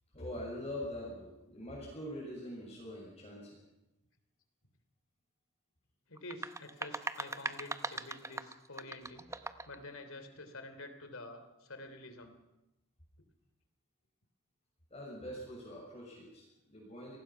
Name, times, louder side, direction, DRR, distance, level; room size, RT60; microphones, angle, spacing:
voice 1, 0.1-3.6 14.9-17.2, left 1 dB, 30° left, -3 dB, 6.4 m, -44 dB
voice 2, 6.1-12.4, left 2 dB, 70° left, 8 dB, 3.3 m, -49 dB
sound 1, 6.2-9.8, right 3 dB, 15° right, 0.8 m, -40 dB
28.0 x 19.5 x 5.8 m, 0.96 s
head